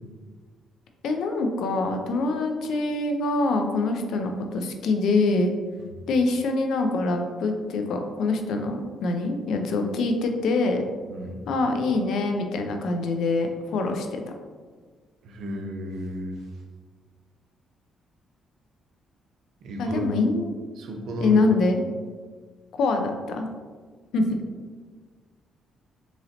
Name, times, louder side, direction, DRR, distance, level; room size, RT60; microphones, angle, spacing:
voice 1, 1.0-5.5 6.1-10.8 11.5-14.2 19.8-20.6 21.2-21.8 22.8-23.5 24.1-24.3, left 3 dB, 75° left, 5 dB, 0.4 m, -24 dB
voice 2, 11.1-11.4 15.2-16.4 19.6-20.2 20.8-21.5, equal, 75° right, 2 dB, 0.6 m, -33 dB
3.9 x 3.0 x 2.8 m, 1.5 s
cardioid pair, 90°, 0 cm